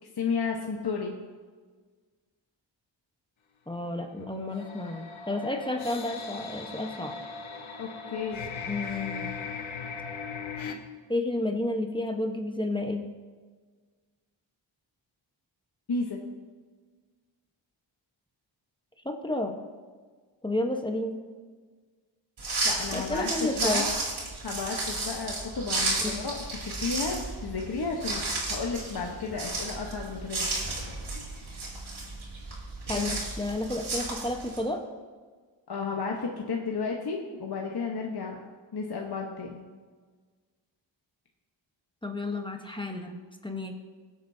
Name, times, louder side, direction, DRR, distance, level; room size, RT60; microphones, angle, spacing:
voice 1, 0.2-1.1 7.8-8.5 15.9-16.2 22.6-23.9 24.4-28.2 28.5-30.7 32.9-33.1 35.7-38.4 38.7-39.6, left 4 dB, 55° left, 0 dB, 1.2 m, -33 dB
voice 2, 3.7-7.2 8.7-9.3 11.1-13.0 19.0-19.5 20.4-21.2 22.9-23.8 26.0-26.2 32.9-34.8 42.0-43.2 43.4-43.7, left 1 dB, 10° left, 4 dB, 1.1 m, -31 dB
sound 1, 4.5-10.8, left 5 dB, 85° left, 1.1 m, -38 dB
sound 2, 22.4-34.6, right 2 dB, 80° right, 3.7 m, -33 dB
20.5 x 8.2 x 2.8 m, 1.5 s
wide cardioid pair, 85°, 46 cm